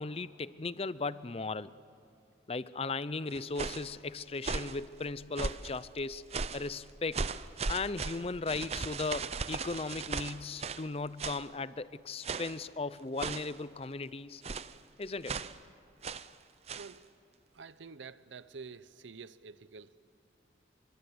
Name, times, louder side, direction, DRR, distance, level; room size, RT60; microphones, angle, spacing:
voice 1, 0.0-1.7 2.5-6.2 6.5-7.2 7.7-14.4 15.0-15.4, left 3 dB, 30° left, 0.5 m, -37 dB
sound 1, 3.3-3.9 4.4-4.8 5.4-5.8 6.3-6.7 7.1-10.9 11.2-11.5 12.2-12.6 13.2-13.6 14.4-14.8 15.3-15.6 16.0-16.3 16.7-16.9, right 4 dB, 35° right, 0.6 m, -37 dB
voice 2, 17.5-20.0, right 5 dB, 85° right, 0.7 m, -48 dB
28.5 x 25.0 x 8.0 m
head